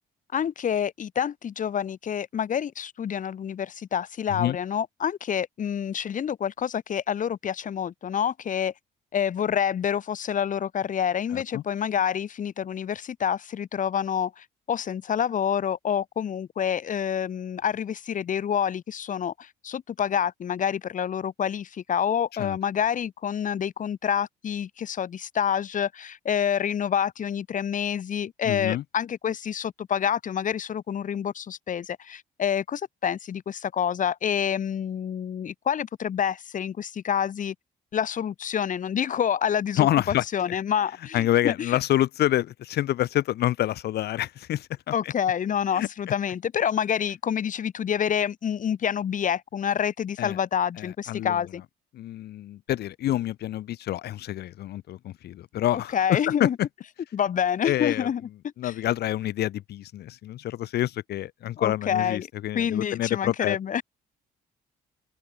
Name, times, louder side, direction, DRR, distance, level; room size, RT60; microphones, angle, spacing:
voice 1, 0.3-8.7 9.1-37.5 37.9-41.8 44.9-51.6 55.7-56.6 57.1-58.2 58.6-58.7 61.6-62.3 62.5-63.8, left 8 dB, 50° left, 2.1 m, -27 dB
voice 2, 11.3-11.6 22.4-22.6 28.4-28.8 39.8-40.2 41.1-45.1 45.7-45.9 50.2-50.4 50.8-51.4 51.9-56.5 57.6-58.1 58.6-63.6, left 13 dB, 70° left, 2.4 m, -27 dB
open air
cardioid pair, 95°, 17 cm